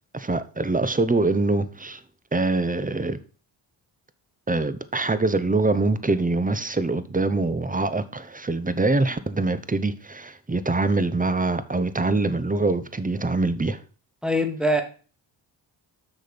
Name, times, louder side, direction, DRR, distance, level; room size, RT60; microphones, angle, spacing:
voice 1, 0.1-2.0 2.3-3.2 4.5-13.8, right 3 dB, 20° right, 0.9 m, -24 dB
voice 2, 14.2-14.8, equal, ahead, 1.9 m, -22 dB
6.5 x 6.4 x 5.2 m
cardioid pair, 65°, 46 cm